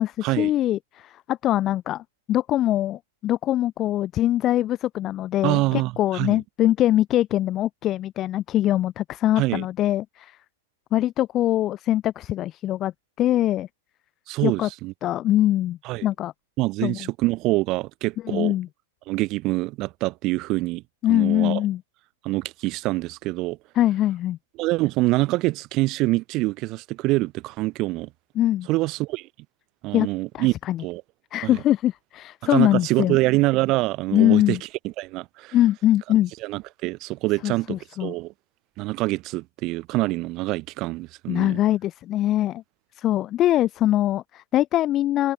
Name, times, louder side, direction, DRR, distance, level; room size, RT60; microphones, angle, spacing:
voice 1, 0.0-10.4 10.9-12.9 13.2-13.7 14.4-14.7 15.0-16.3 16.8-17.1 18.2-18.7 21.0-21.8 23.8-24.4 28.3-28.7 29.9-30.1 30.3-30.8 31.3-33.2 34.1-34.6 35.5-36.3 37.4-38.1 41.3-42.6 43.0-45.3, left 13 dB, 30° left, 0.6 m, -23 dB
voice 2, 5.4-6.4 9.4-9.7 14.3-14.9 15.8-16.1 16.6-18.5 19.1-20.8 21.1-21.6 22.2-23.6 24.6-28.1 28.7-29.3 29.8-30.5 30.8-31.0 31.4-31.6 32.4-34.6 35.0-35.6 36.4-38.3 38.8-41.6, right 20 dB, 40° right, 0.5 m, -25 dB
hypercardioid pair, 135°, 0 cm